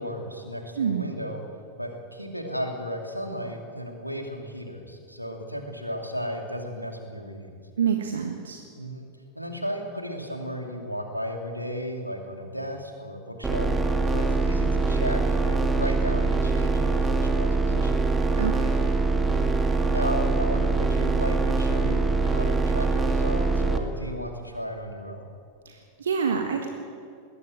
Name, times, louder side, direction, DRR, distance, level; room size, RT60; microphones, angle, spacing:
voice 1, 0.0-1.4 1.8-7.5 8.8-9.1 9.3-13.7 14.1-18.0 19.3-25.2, equal, 90° right, 3 dB, 2.8 m, -34 dB
voice 2, 0.8-1.1 7.8-8.6 18.4-19.0 25.6-26.7, right 7 dB, 65° right, 4 dB, 1.5 m, -27 dB
sound 1, 13.4-23.8, right 3 dB, 10° right, 2.1 m, -23 dB
20.5 x 17.0 x 9.1 m, 2.3 s
figure-of-eight pair, 90°, 0 cm